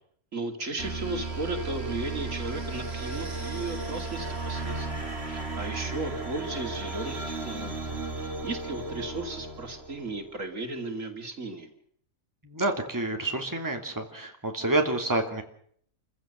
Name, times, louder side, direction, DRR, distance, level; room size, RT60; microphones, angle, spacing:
voice 1, 0.3-7.9 8.2-11.7, right 2 dB, 65° right, 5 dB, 3.0 m, -35 dB
sound 1, 0.8-10.2, right 3 dB, 50° right, 2.7 m, -35 dB
voice 2, 12.4-15.4, right 2 dB, 15° right, 3 dB, 2.9 m, -28 dB
28.5 x 15.5 x 8.2 m, 0.63 s
omnidirectional pair, 1.5 m